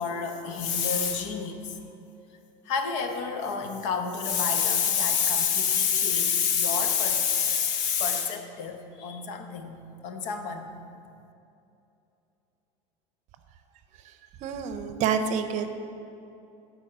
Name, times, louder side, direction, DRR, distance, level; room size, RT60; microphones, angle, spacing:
voice 1, 0.0-1.8 2.6-10.7, left 7 dB, 70° left, 6 dB, 0.9 m, -27 dB
voice 2, 14.4-15.7, right 7 dB, 50° right, 9 dB, 0.6 m, -28 dB
9.1 x 4.6 x 6.7 m, 2.7 s
supercardioid pair, 125°, 16 cm